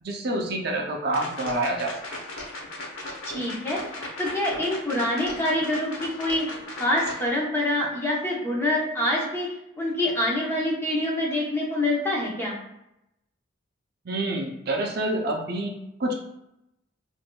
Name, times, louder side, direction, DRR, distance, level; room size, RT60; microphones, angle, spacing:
voice 1, 0.0-2.0 14.1-16.1, right 1 dB, 50° right, 1 dB, 0.5 m, -27 dB
sound 1, 1.1-7.3, left 2 dB, 75° left, 0.9 m, -37 dB
voice 2, 3.2-6.5 6.8-9.5 9.8-12.6, left 1 dB, 10° left, -4 dB, 0.7 m, -26 dB
6.1 x 2.6 x 2.2 m, 0.84 s
head